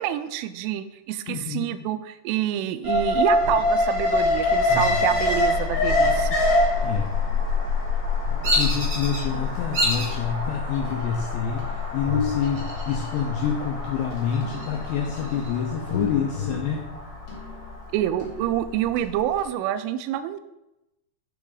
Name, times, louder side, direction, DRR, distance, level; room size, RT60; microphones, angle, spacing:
voice 1, 0.0-6.4 17.9-20.4, right 11 dB, 90° right, 12 dB, 3.2 m, -27 dB
voice 2, 1.3-1.8 6.8-7.1 8.6-16.9, left 7 dB, 80° left, 1 dB, 2.7 m, -27 dB
Alarm, 2.8-18.9 19.3-19.4, left 2 dB, 30° left, 1.9 m, -25 dB
sound 1, 3.4-3.9 4.7-5.4 6.0-7.0 8.3-10.3 10.8-11.2 11.6-13.8 14.4-17.9 18.2-18.7 19.0-19.1, left 4 dB, 50° left, 3.5 m, -35 dB
Bird vocalization bird call bird song, 8.4-9.2 9.7-10.2 10.7-11.3 12.4-13.2 13.5-13.6 14.1-15.5, equal, 45° right, 2.9 m, -27 dB
9.6 x 6.0 x 3.9 m, 0.92 s
omnidirectional pair, 5.6 m